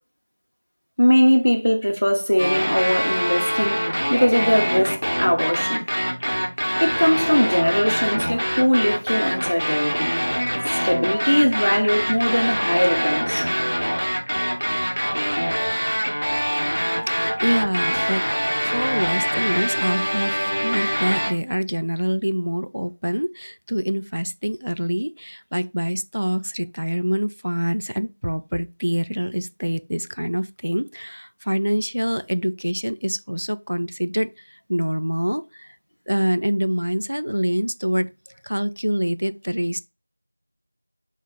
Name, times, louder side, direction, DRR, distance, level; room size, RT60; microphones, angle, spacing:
voice 1, 1.0-3.8 4.1-5.9 6.8-10.1 10.8-13.5, equal, 50° left, 0.9 m, -20 dB
sound 1, 2.4-21.3, equal, 85° right, 1.1 m, -24 dB
voice 2, 17.1-35.8 36.1-38.1 38.4-39.8, equal, 70° right, 0.3 m, -25 dB
4.4 x 2.4 x 3.7 m
figure-of-eight pair, 180°, 0 cm